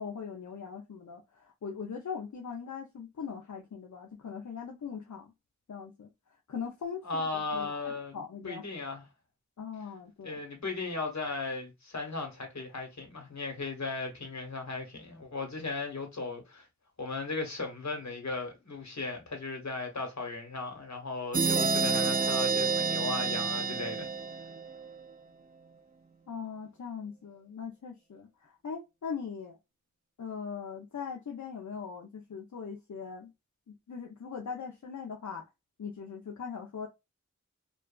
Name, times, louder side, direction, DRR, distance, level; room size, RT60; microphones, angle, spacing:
voice 1, 0.0-5.3 5.7-6.1 6.5-7.3 7.5-8.8 9.6-10.4 26.3-29.6 30.2-33.3 33.9-35.5 35.8-36.9, left 6 dB, 85° left, 0.5 m, -40 dB
voice 2, 7.0-8.1 8.4-9.1 10.2-16.7 17.0-24.1, left 3 dB, 70° left, 1.1 m, -36 dB
sound 1, 21.3-24.9, right 5 dB, 30° right, 0.4 m, -29 dB
2.9 x 2.3 x 2.2 m
wide cardioid pair, 50°, 29 cm